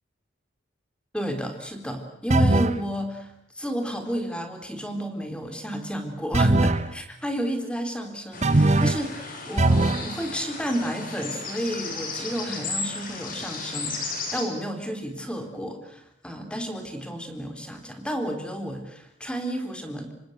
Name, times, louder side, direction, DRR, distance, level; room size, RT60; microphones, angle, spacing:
voice 1, 1.1-20.1, equal, 5° left, 6 dB, 3.8 m, -31 dB
sound 1, 2.3-2.8 6.3-6.9 8.4-9.1 9.6-10.1, right 2 dB, 35° right, 1.1 m, -20 dB
sound 2, 8.3-14.4, left 3 dB, 50° left, 6.7 m, -34 dB
27.0 x 24.5 x 8.0 m, 0.76 s
head